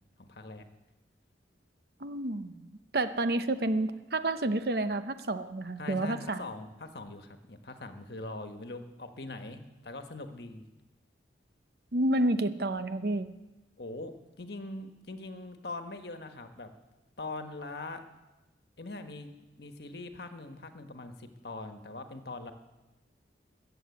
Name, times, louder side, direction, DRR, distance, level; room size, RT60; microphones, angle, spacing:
voice 1, 0.2-0.6 5.8-10.6 13.8-14.1 14.4-16.7 17.2-18.0 18.8-19.3 19.6-22.5, left 2 dB, 60° left, 7 dB, 1.3 m, -42 dB
voice 2, 2.0-6.4 11.9-13.3, right 1 dB, 55° right, 11 dB, 0.8 m, -30 dB
21.0 x 7.8 x 8.4 m, 1.1 s
head